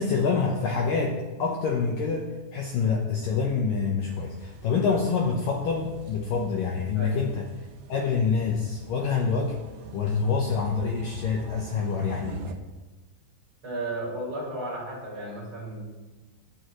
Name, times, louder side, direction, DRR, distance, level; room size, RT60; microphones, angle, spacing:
voice 1, 0.0-7.5 7.9-9.6 9.9-12.4, left 5 dB, 85° left, 0 dB, 1.9 m, -26 dB
sound 1, 4.1-12.5, right 4 dB, 75° right, 2.4 m, -45 dB
voice 2, 13.6-15.8, right 1 dB, 30° right, -5 dB, 4.8 m, -34 dB
23.5 x 9.4 x 3.1 m, 1.2 s
omnidirectional pair, 5.5 m